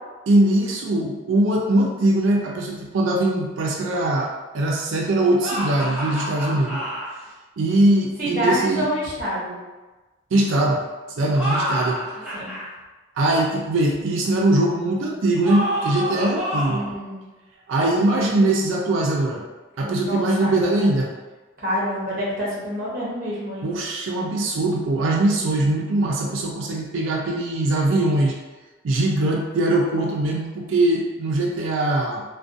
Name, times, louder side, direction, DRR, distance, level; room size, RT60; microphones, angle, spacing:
voice 1, 0.3-6.8 7.6-8.9 10.3-10.8 11.2-12.0 13.2-16.8 17.7-19.4 19.8-21.1 23.6-28.4 28.8-32.2, right 1 dB, 90° right, -1 dB, 0.4 m, -21 dB
sound 1, 5.4-7.1 11.2-12.7 15.4-16.9, equal, 5° right, 0.5 m, -28 dB
voice 2, 8.2-9.6 12.3-12.6 16.5-17.2 20.1-20.6 21.6-23.7, equal, 45° right, -6 dB, 0.8 m, -27 dB
2.4 x 2.2 x 2.5 m, 1.2 s
head